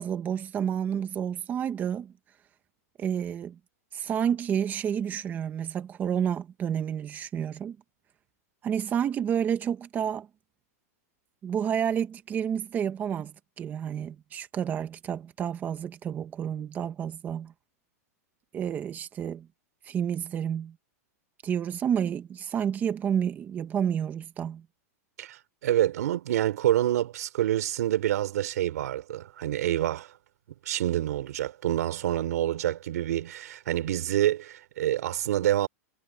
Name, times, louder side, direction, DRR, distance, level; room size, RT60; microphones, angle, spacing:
voice 1, 0.0-2.1 3.0-3.6 3.9-7.8 8.6-10.3 11.4-17.5 18.5-19.5 19.8-20.7 21.4-24.6, right 8 dB, 20° right, 1.3 m, -30 dB
voice 2, 25.2-30.1 30.7-35.7, right 13 dB, 80° right, 3.5 m, -27 dB
supercardioid pair, 155°, 9 cm